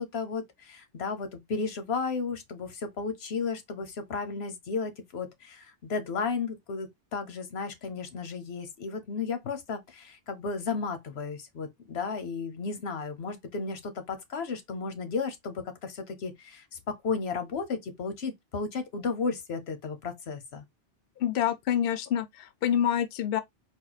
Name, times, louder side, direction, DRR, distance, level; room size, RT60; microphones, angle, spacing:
voice 1, 0.0-20.6, left 4 dB, 90° left, 1.1 m, -34 dB
voice 2, 21.2-23.4, left 10 dB, 70° left, 0.7 m, -27 dB
4.3 x 2.2 x 3.9 m
omnidirectional pair, 1.0 m